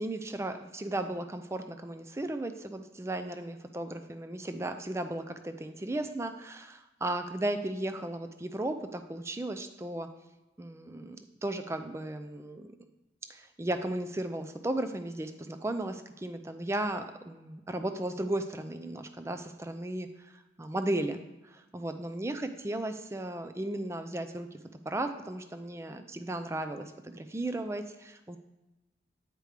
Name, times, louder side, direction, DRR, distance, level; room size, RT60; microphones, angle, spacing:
voice 1, 0.0-10.1 10.6-12.8 13.3-24.6 24.9-28.4, right 1 dB, 15° right, 8 dB, 0.4 m, -35 dB
9.1 x 4.9 x 3.3 m, 1.0 s
head